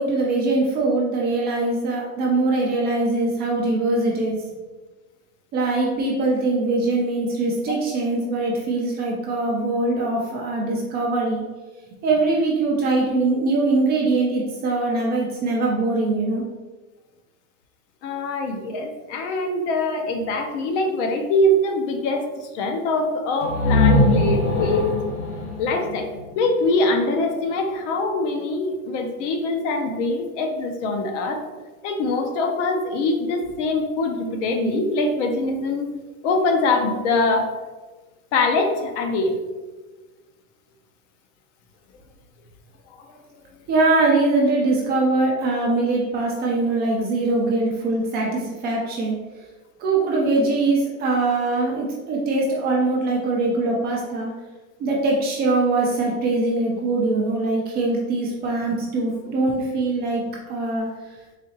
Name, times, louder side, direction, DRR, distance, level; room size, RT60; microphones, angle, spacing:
voice 1, 0.0-4.4 5.5-11.4 12.0-16.4 43.7-49.2 49.8-54.3 54.8-60.9, right 2 dB, 25° right, -2 dB, 0.4 m, -22 dB
voice 2, 18.0-24.9 25.6-26.1 26.4-31.4 31.8-35.9 36.2-37.5 38.3-39.4 43.0-43.1, left 2 dB, 55° left, 4 dB, 0.7 m, -23 dB
sound 1, 23.4-27.1, left 2 dB, 80° left, 1.1 m, -22 dB
4.0 x 2.7 x 2.8 m, 1.3 s
supercardioid pair, 135°, 42 cm